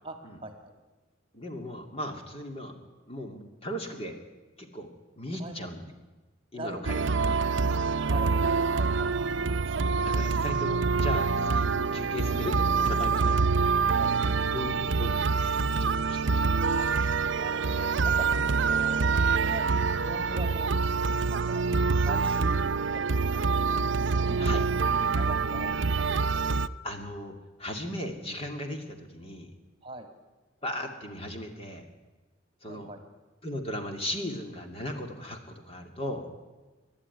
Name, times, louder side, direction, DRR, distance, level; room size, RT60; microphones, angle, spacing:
voice 1, 0.4-0.7 5.4-5.5 6.5-7.0 8.0-9.1 13.9-14.2 16.8-16.9 17.3-18.3 18.6-19.0 19.4-19.7 20.0-20.7 21.3-23.9 24.3-24.7 25.1-26.6 29.8-30.1 32.6-33.0, right 1 dB, 25° right, 6 dB, 2.1 m, -41 dB
voice 2, 1.3-2.8 3.1-4.2 4.6-4.9 5.1-5.9 6.5-7.5 9.7-13.4 14.5-16.5 24.4-24.7 26.8-27.3 27.6-29.5 30.6-31.8 32.6-32.9 33.4-36.3, left 1 dB, 30° left, 3 dB, 2.5 m, -37 dB
sound 1, 6.8-26.7, right 4 dB, 65° right, 0.6 m, -26 dB
27.5 x 12.0 x 9.7 m, 1.2 s
head